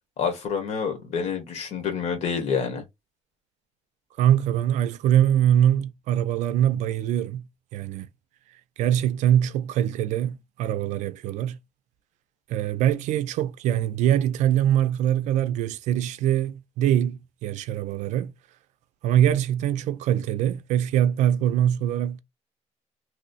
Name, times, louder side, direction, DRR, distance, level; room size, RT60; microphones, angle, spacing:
voice 1, 0.2-2.8, left 6 dB, 60° left, 1.2 m, -28 dB
voice 2, 4.2-7.5 7.7-8.1 8.8-11.6 12.5-18.3 19.0-22.2, right 11 dB, 85° right, 0.4 m, -23 dB
3.0 x 2.0 x 3.9 m
cardioid pair, 165°, 12 cm